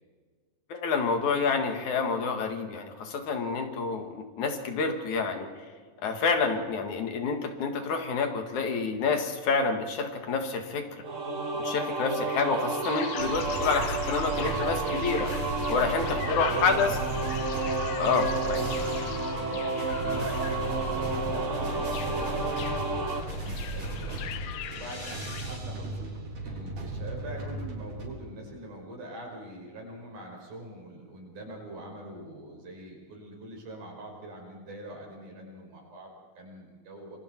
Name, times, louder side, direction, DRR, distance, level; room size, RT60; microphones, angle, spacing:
voice 1, 0.7-5.5 6.0-10.9 11.6-15.3 15.7-17.0 18.0-18.6, left 4 dB, 65° left, 5 dB, 3.2 m, -28 dB
sound 1, 11.0-23.2, right 3 dB, 50° right, 0.9 m, -31 dB
sound 2, 12.8-25.6, left 11 dB, 90° left, 2.6 m, -41 dB
sound 3, 13.2-28.1, right 1 dB, 90° right, 5.6 m, -36 dB
voice 2, 15.7-17.0 19.2-24.2 24.7-26.1 26.4-37.2, right 1 dB, 70° right, 0 dB, 6.9 m, -43 dB
27.0 x 23.0 x 4.6 m, 1.5 s
omnidirectional pair, 3.7 m